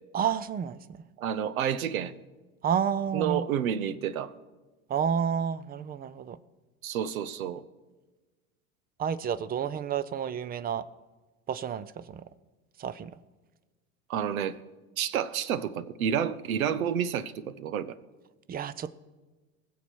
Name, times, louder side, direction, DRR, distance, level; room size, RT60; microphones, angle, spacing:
voice 1, 0.1-1.0 2.6-3.4 4.9-6.4 9.0-10.9 11.5-12.2 12.8-13.2 18.5-18.9, right 7 dB, 20° right, 18 dB, 0.5 m, -30 dB
voice 2, 1.2-2.1 3.1-4.3 6.8-7.6 14.1-14.6 15.0-18.0, right 9 dB, 75° right, 17 dB, 0.9 m, -30 dB
21.0 x 7.3 x 4.6 m, 1.2 s
hypercardioid pair, 85°, 42 cm